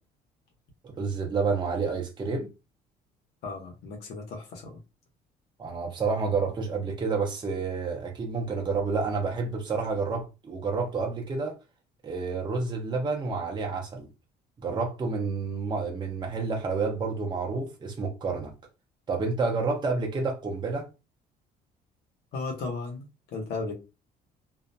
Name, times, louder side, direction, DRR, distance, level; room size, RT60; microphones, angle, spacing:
voice 1, 0.8-2.5 5.6-11.6 12.0-14.1 14.6-18.5 19.1-20.9, right 4 dB, 25° right, 0.7 m, -29 dB
voice 2, 3.4-4.8 22.3-23.7, left 3 dB, 80° left, 1.1 m, -35 dB
2.6 x 2.6 x 2.2 m
cardioid pair, 110°, 17 cm